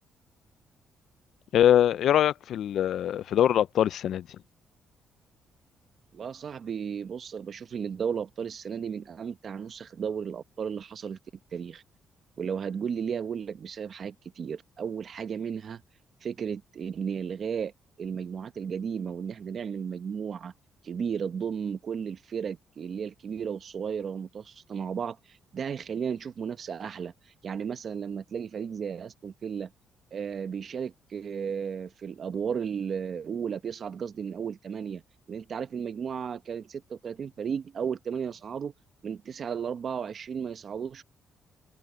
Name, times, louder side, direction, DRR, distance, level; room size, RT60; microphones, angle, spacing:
voice 1, 1.5-4.3, left 10 dB, 70° left, 0.4 m, -23 dB
voice 2, 6.1-11.2 11.5-11.8 12.4-15.8 16.2-17.7 18.0-20.5 20.8-27.1 27.4-29.7 30.1-35.0 35.3-38.7 39.0-41.0, right 7 dB, 50° right, 1.2 m, -34 dB
cardioid pair, 90°, 0 cm